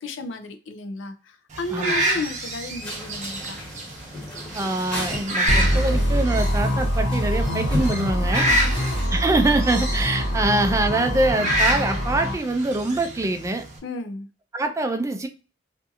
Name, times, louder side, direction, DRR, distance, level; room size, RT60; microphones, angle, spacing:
voice 1, 0.0-3.6 8.3-9.0 13.8-14.3, left 2 dB, 90° left, 8 dB, 0.5 m, -33 dB
sound 1, 1.5-13.8, right 1 dB, 40° right, 0.7 m, -29 dB
voice 2, 1.7-2.0 4.5-8.5 9.1-13.6 14.5-15.3, right 2 dB, 15° right, 7 dB, 0.3 m, -24 dB
sound 2, 2.8-9.1, left 1 dB, 5° left, 1.0 m, -35 dB
sound 3, 5.5-12.3, equal, 70° left, 1.0 m, -24 dB
2.6 x 2.5 x 2.4 m, 0.34 s
head